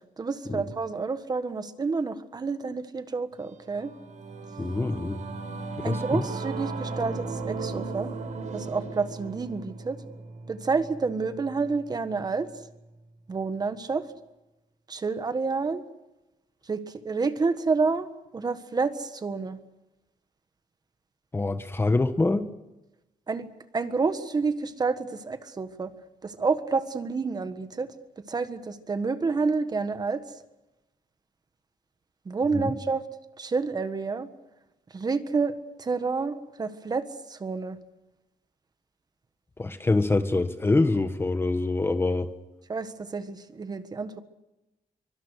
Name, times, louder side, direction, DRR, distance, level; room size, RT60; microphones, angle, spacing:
voice 1, 0.2-3.9 5.8-8.1 8.5-10.0 10.5-12.5 13.3-14.0 14.9-15.8 16.7-18.1 18.3-19.6 23.3-23.5 23.7-25.9 26.2-27.9 28.3-30.2 32.2-33.0 33.4-34.3 34.9-37.8 42.7-44.2, right 4 dB, 30° right, 10 dB, 1.5 m, -29 dB
Singing / Musical instrument, 3.5-13.2, right 3 dB, 60° right, 4.1 m, -37 dB
voice 2, 4.6-5.2 5.8-6.2 21.3-22.4 32.5-32.7 39.6-42.3, left 2 dB, 15° left, 9 dB, 1.3 m, -25 dB
24.5 x 24.0 x 6.4 m, 0.99 s
wide cardioid pair, 160°, 14 cm